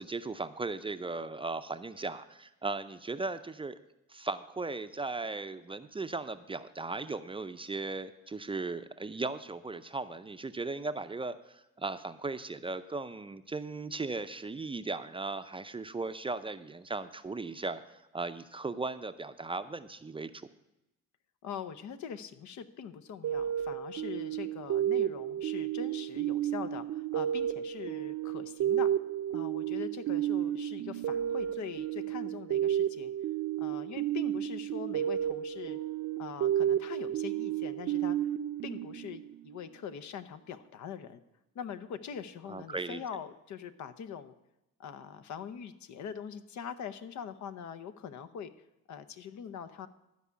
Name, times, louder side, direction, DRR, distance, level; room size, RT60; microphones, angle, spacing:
voice 1, 0.0-3.8 4.1-20.5 42.5-43.0, right 3 dB, 20° right, 10 dB, 0.5 m, -37 dB
voice 2, 21.4-28.9 29.3-33.1 33.6-35.8 36.2-38.3 38.6-41.2 41.5-44.3 44.8-48.5 48.9-49.9, left 7 dB, 70° left, 12 dB, 0.8 m, -43 dB
sound 1, 23.2-39.6, right 11 dB, 60° right, 0.6 m, -32 dB
12.5 x 4.8 x 8.2 m, 0.92 s
cardioid pair, 90°, 30 cm